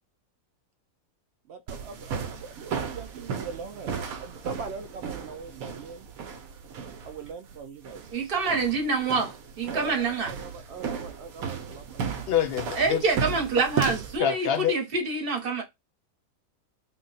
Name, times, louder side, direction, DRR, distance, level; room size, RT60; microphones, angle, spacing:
voice 1, 1.5-3.9 4.2-6.1 7.0-8.0 9.7-12.1, right 5 dB, 65° right, 0.7 m, -41 dB
sound 1, 1.7-14.2, right 6 dB, 80° right, 1.1 m, -35 dB
voice 2, 8.1-10.3 12.7-15.6, right 4 dB, 45° right, 1.1 m, -26 dB
voice 3, 12.3-13.0 14.2-14.7, left 9 dB, 70° left, 0.5 m, -25 dB
3.5 x 2.2 x 3.9 m
omnidirectional pair, 1.5 m